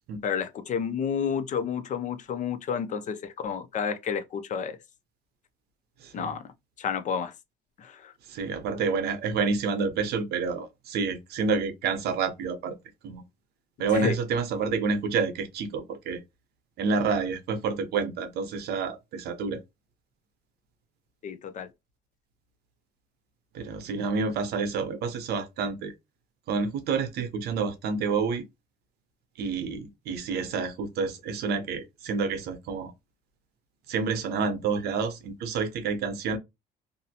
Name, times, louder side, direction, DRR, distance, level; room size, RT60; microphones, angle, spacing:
voice 1, 0.2-4.8 6.1-6.4 6.8-7.3 7.8-8.1 13.9-14.2 21.2-21.7, left 7 dB, 45° left, 0.5 m, -30 dB
voice 2, 8.3-12.8 13.0-13.2 13.8-16.2 16.8-19.6 23.5-25.9 26.5-28.4 29.4-32.9 33.9-36.4, right 5 dB, 70° right, 0.7 m, -29 dB
2.6 x 2.0 x 2.8 m
cardioid pair, 110°, 17 cm